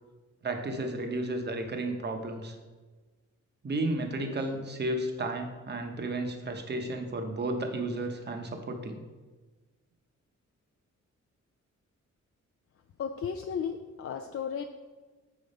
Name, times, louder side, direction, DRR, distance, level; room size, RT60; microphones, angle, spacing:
voice 1, 0.4-2.5 3.6-9.0, right 2 dB, 35° right, 5 dB, 0.8 m, -33 dB
voice 2, 13.0-14.6, left 7 dB, 50° left, 4 dB, 0.4 m, -34 dB
7.6 x 5.1 x 5.3 m, 1.3 s
wide cardioid pair, 160°, 30 cm